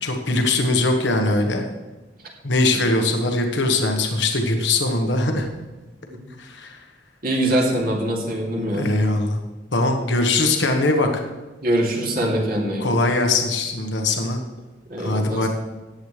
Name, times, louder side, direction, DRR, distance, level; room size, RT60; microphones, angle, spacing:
voice 1, 0.0-1.7 2.4-5.5 6.4-6.8 8.7-9.4 9.7-11.1 12.8-14.4 15.0-15.5, left 2 dB, 75° left, 3 dB, 1.3 m, -21 dB
voice 2, 7.2-8.9 11.6-12.9 14.9-15.5, right 1 dB, 55° right, -2 dB, 3.0 m, -23 dB
14.5 x 9.9 x 3.3 m, 1.2 s
head